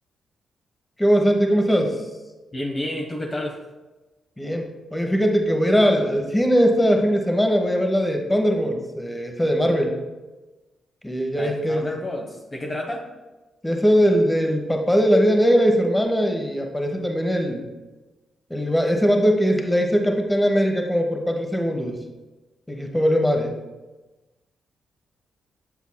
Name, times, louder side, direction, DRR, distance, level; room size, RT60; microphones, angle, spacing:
voice 1, 1.0-2.0 4.4-10.0 11.0-11.8 13.6-17.6 18.5-22.0 22.7-23.5, equal, 10° left, 3 dB, 1.3 m, -20 dB
voice 2, 2.5-3.6 11.3-13.0, left 1 dB, 35° left, 0 dB, 1.0 m, -30 dB
8.4 x 6.9 x 2.3 m, 1.1 s
hypercardioid pair, 40°, 0 cm